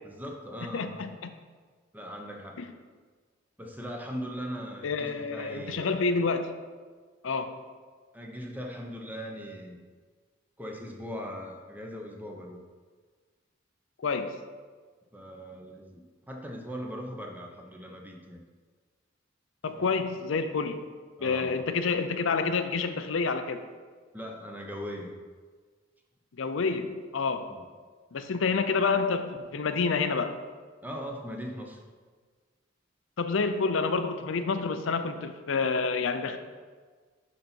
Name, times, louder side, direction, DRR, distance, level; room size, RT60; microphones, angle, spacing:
voice 1, 0.0-0.9 1.9-2.6 3.6-6.1 8.1-9.8 10.6-12.6 15.1-18.4 19.7-19.9 21.2-21.6 24.1-25.1 27.5-27.6 30.8-31.8, equal, 10° right, 1 dB, 0.9 m, -39 dB
voice 2, 0.7-1.3 2.6-2.7 4.8-6.6 7.2-7.5 14.0-14.4 19.6-20.9 21.2-23.6 26.4-27.5 28.1-30.4 33.2-36.4, left 4 dB, 75° left, 9 dB, 0.5 m, -28 dB
11.5 x 4.1 x 4.4 m, 1.5 s
head